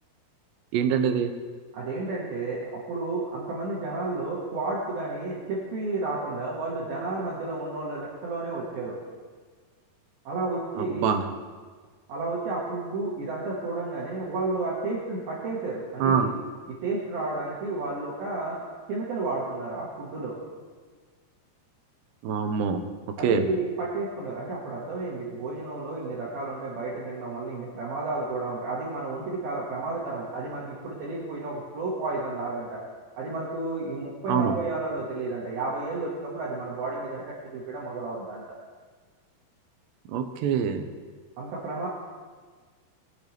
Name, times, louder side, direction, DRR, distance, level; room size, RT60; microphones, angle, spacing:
voice 1, 0.7-1.3 10.8-11.2 16.0-16.3 22.2-22.8 23.2-23.5 34.3-34.5 40.1-40.9, right 7 dB, 90° right, 7 dB, 3.0 m, -24 dB
voice 2, 1.7-9.0 10.3-11.1 12.1-16.4 16.7-18.6 18.9-20.4 23.2-32.8 33.2-37.2 37.5-38.4 41.4-41.9, right 3 dB, 65° right, -6 dB, 3.5 m, -31 dB
22.0 x 7.8 x 3.4 m, 1.5 s
omnidirectional pair, 4.8 m